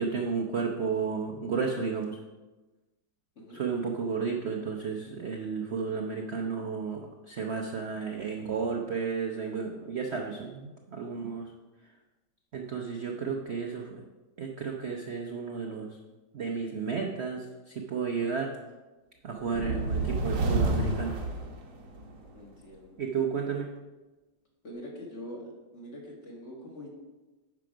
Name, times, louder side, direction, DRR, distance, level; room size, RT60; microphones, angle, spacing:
voice 1, 0.0-2.2 3.5-7.0 7.3-11.5 12.5-14.0 14.4-16.0 16.3-18.5 19.2-21.2 23.0-23.7, right 5 dB, 55° right, 1 dB, 0.8 m, -32 dB
sound 1, 19.4-22.2, right 2 dB, 90° right, 1.9 m, -29 dB
voice 2, 22.3-23.0 24.6-26.9, equal, 40° left, -3 dB, 2.2 m, -44 dB
9.5 x 6.0 x 5.0 m, 1.2 s
omnidirectional pair, 1.9 m